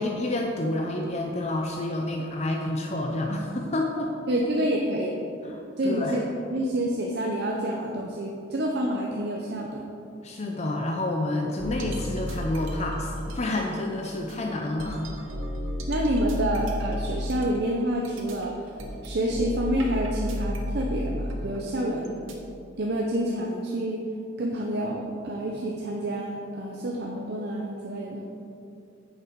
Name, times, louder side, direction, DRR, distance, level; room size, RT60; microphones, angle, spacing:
voice 1, 0.0-4.1 5.4-6.2 10.2-15.1, left 1 dB, 35° left, 1 dB, 0.6 m, -29 dB
voice 2, 4.3-5.1 5.8-6.2 6.5-9.9 15.9-18.5 19.0-22.2 22.8-24.0 24.4-28.2, right 1 dB, 55° right, -1 dB, 0.7 m, -28 dB
sound 1, 11.6-13.6 14.0-22.3, equal, 90° right, 1.2 m, -32 dB
8.6 x 6.7 x 4.6 m, 2.6 s
head